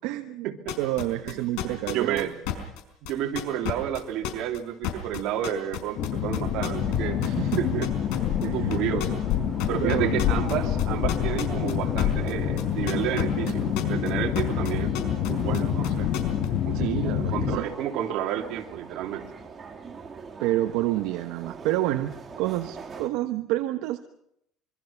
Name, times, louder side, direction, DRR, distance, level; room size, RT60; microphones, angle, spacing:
voice 1, 0.0-0.5 0.8-2.3 7.2-7.6 8.4-9.0 9.4-10.3 13.5-13.6 16.7-17.7 20.4-22.1 22.4-24.0, right 15 dB, 85° right, 7 dB, 1.2 m, -29 dB
sound 1, 0.7-7.0 7.2-9.3 9.6-14.1 14.4-16.5, left 12 dB, 90° left, 4.7 m, -31 dB
voice 2, 1.7-2.3 3.1-7.3 7.6-7.9 8.4-9.2 9.7-14.9 15.3-16.1 16.6-16.9 17.3-19.3, right 11 dB, 70° right, 3 dB, 3.1 m, -30 dB
sound 2, 6.0-17.6, left 9 dB, 60° left, 1.6 m, -27 dB
sound 3, 6.7-23.1, right 5 dB, 25° right, 3.0 m, -42 dB
25.5 x 24.5 x 5.9 m, 0.75 s
cardioid pair, 140°, 0 cm